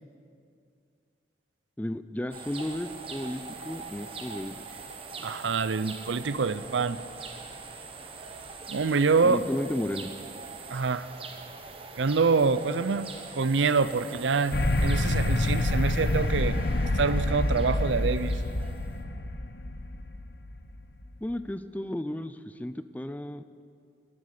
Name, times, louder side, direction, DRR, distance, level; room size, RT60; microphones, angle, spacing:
voice 1, 1.8-4.6 9.2-10.1 21.2-23.4, left 1 dB, 10° left, 12 dB, 0.4 m, -33 dB
sound 1, 2.3-19.0, right 4 dB, 30° right, 1.2 m, -43 dB
voice 2, 5.2-7.0 8.7-9.4 10.7-11.1 12.0-16.6 16.9-18.4, right 4 dB, 90° right, 15 dB, 0.6 m, -26 dB
sound 2, 14.5-21.0, left 2 dB, 60° left, 0.8 m, -27 dB
18.0 x 12.0 x 6.6 m, 2.4 s
head